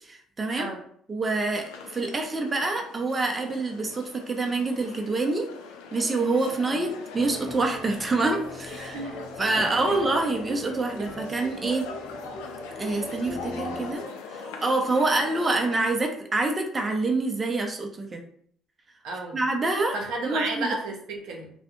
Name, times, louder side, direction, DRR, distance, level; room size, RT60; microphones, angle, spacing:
voice 1, 0.0-0.7 1.1-5.5 5.9-9.0 9.4-11.9 12.8-18.2 19.3-20.0 20.2-20.8, right 3 dB, 30° right, 3 dB, 0.5 m, -26 dB
sound 1, 1.5-15.8, left 5 dB, 90° left, 0.4 m, -41 dB
sound 2, 7.1-14.0, equal, 15° left, 0.7 m, -40 dB
voice 2, 8.9-9.2 9.8-10.0 19.0-19.4 19.9-21.5, right 2 dB, 80° right, 1 dB, 0.6 m, -32 dB
2.3 x 2.1 x 2.9 m, 0.64 s
supercardioid pair, 70°, 0 cm